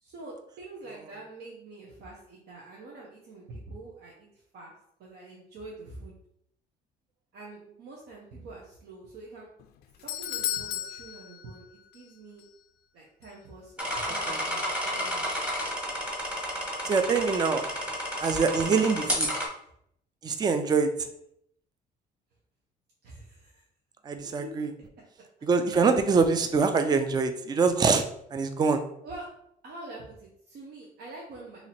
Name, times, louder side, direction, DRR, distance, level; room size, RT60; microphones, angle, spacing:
voice 1, 0.0-4.3 4.5-4.7 5.0-6.1 7.3-9.5 10.0-12.4 12.9-15.4 16.8-17.5 23.0-23.6 24.2-24.5 29.0-29.3 29.6-31.7, right 2 dB, 70° right, -3 dB, 0.9 m, -46 dB
Doorbell, 9.6-12.1 12.4-12.5 13.2-13.3, left 11 dB, 75° left, 0.4 m, -35 dB
sound 1, 13.8-19.4, equal, 5° right, 1.0 m, -31 dB
voice 2, 16.9-17.6 18.2-19.3 20.2-20.9 24.0-24.7 25.4-28.0 28.3-28.8, right 5 dB, 25° right, 8 dB, 0.4 m, -24 dB
2.9 x 2.8 x 4.2 m, 0.72 s
cardioid pair, 110°, 17 cm